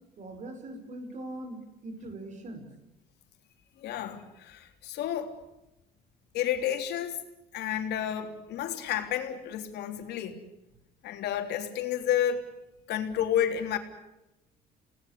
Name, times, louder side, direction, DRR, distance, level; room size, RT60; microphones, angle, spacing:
voice 1, 0.2-2.7, right 1 dB, 45° right, 6 dB, 5.4 m, -41 dB
voice 2, 3.8-5.4 6.3-7.2 7.5-10.4 11.0-12.5 12.9-13.8, left 10 dB, 80° left, 5 dB, 3.4 m, -30 dB
29.5 x 19.0 x 8.3 m, 0.93 s
cardioid pair, 110°, 17 cm